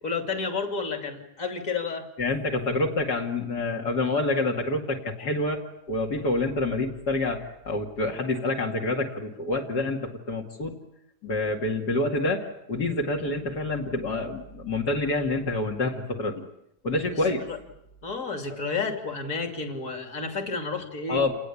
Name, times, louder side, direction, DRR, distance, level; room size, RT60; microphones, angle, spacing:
voice 1, 0.0-2.1 17.1-17.6 18.0-21.2, left 4 dB, 50° left, 5 dB, 3.3 m, -31 dB
voice 2, 2.2-10.7 11.2-16.4 16.8-17.4 21.1-21.3, left 2 dB, 65° left, -1 dB, 2.9 m, -27 dB
28.5 x 20.5 x 8.5 m, 0.81 s
omnidirectional pair, 1.8 m